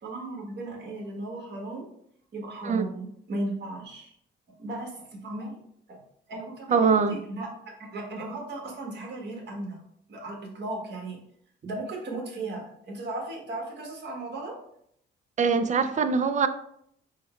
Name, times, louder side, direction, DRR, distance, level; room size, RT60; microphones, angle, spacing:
voice 1, 0.0-1.9 2.3-4.1 4.6-5.6 5.9-6.0 6.3-7.5 7.8-9.8 10.1-11.2 11.6-14.5, right 2 dB, 60° right, -1 dB, 1.5 m, -36 dB
voice 2, 6.7-7.2 15.4-16.5, right 5 dB, 40° right, 11 dB, 0.4 m, -23 dB
4.6 x 2.2 x 4.4 m, 0.70 s
cardioid pair, 90°, 20 cm